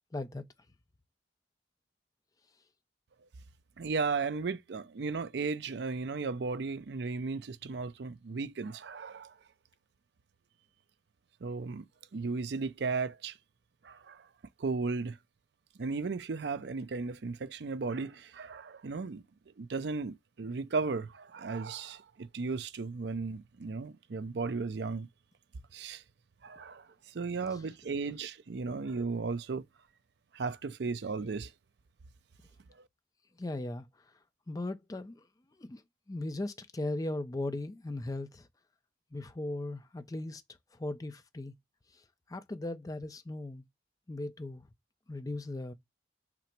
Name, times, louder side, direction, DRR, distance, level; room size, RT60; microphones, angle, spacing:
voice 1, 0.1-0.5 27.5-27.6 27.9-28.1 33.4-34.1 34.5-35.3 35.5-38.5 39.1-40.4 40.7-41.5 41.9-43.6 44.1-44.7 45.1-45.7, left 2 dB, 20° left, 0.4 m, -38 dB
voice 2, 3.8-9.3 11.4-11.8 12.1-13.3 13.8-14.2 14.6-15.2 15.8-19.2 19.6-25.1 25.7-26.0 26.4-26.8 27.1-29.6 30.3-31.5, right 4 dB, 65° right, 0.5 m, -35 dB
5.9 x 2.0 x 4.4 m
head